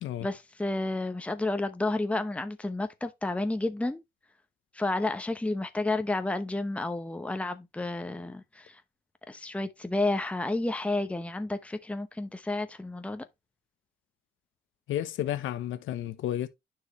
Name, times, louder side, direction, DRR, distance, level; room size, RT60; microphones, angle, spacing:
voice 1, 0.2-4.0 4.7-8.8 9.3-13.3, left 2 dB, 5° left, 0.9 m, -31 dB
voice 2, 14.9-16.5, left 12 dB, 80° left, 0.9 m, -32 dB
9.8 x 4.8 x 3.1 m
cardioid pair, 90°, 20 cm